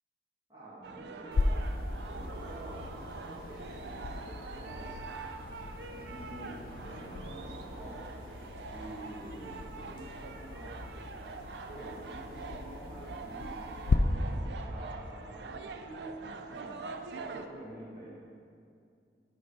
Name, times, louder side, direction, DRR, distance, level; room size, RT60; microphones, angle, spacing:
voice 1, 0.5-5.0 5.9-8.1 8.7-10.8 11.7-16.8 17.1-18.1, right 1 dB, 25° right, -9 dB, 1.7 m, -48 dB
sound 1, 0.8-17.5, right 4 dB, 75° right, 0.4 m, -45 dB
sound 2, 1.3-14.0, left 3 dB, 50° left, 0.3 m, -37 dB
sound 3, 2.3-13.4, equal, 25° left, 1.1 m, -54 dB
7.8 x 3.8 x 4.9 m, 2.4 s
head